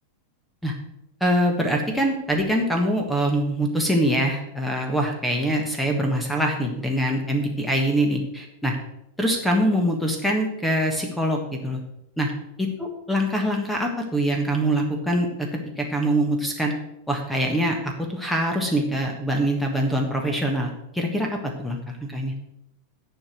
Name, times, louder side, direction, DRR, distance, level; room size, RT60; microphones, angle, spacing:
voice 1, 1.2-8.7 9.2-11.8 12.2-12.3 12.6-15.5 15.8-16.7 17.1-22.3, equal, 5° left, 2 dB, 1.4 m, -24 dB
10.5 x 5.1 x 7.9 m, 0.84 s
figure-of-eight pair, 90°, 0 cm